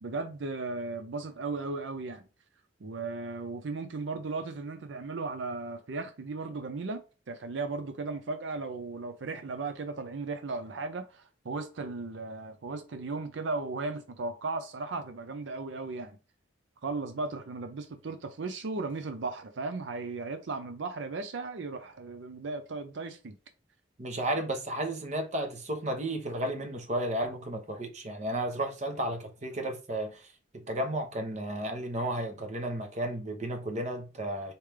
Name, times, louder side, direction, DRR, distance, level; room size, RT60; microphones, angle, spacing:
voice 1, 0.0-2.2 2.8-7.0 7.3-16.2 16.8-23.3, right 3 dB, 75° right, 0.5 m, -36 dB
voice 2, 24.0-30.3 30.7-34.5, right 1 dB, 40° right, 1.0 m, -33 dB
4.3 x 3.3 x 3.4 m
head